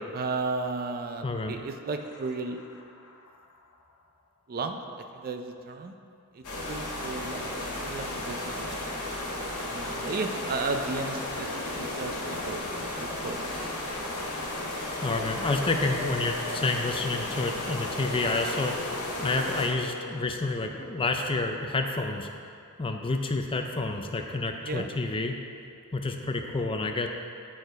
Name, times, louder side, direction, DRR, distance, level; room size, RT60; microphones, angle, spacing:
voice 1, 0.0-2.6 4.5-4.8 5.1-5.9 6.3-8.7 9.7-11.5 11.7-12.2 12.4-13.7 24.6-24.8, right 3 dB, 40° right, 6 dB, 0.5 m, -34 dB
voice 2, 1.2-1.6 15.0-18.7 19.2-22.3 22.8-25.4 25.9-27.1, left 3 dB, 25° left, 4 dB, 0.5 m, -29 dB
sound 1, 2.0-3.9 6.9-7.0 7.2-20.9, left 3 dB, 70° left, 0.7 m, -42 dB
sound 2, 6.4-19.7, left 1 dB, 90° left, 1.8 m, -34 dB
9.6 x 4.5 x 4.6 m, 2.5 s
head